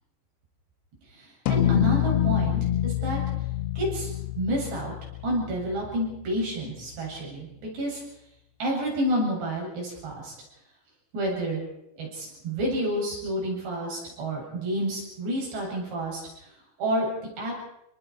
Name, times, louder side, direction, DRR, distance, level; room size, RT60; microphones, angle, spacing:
voice 1, 1.1-3.2 3.8-4.1 4.4-4.9 5.2-8.0 8.6-10.3 11.1-11.6 12.0-16.2 16.8-17.1 17.4-17.5, right 1 dB, 70° right, -2 dB, 10.0 m, -29 dB
sound 1, 1.5-6.1, left 11 dB, 70° left, 2.8 m, -26 dB
28.0 x 23.0 x 4.9 m, 0.83 s
omnidirectional pair, 5.1 m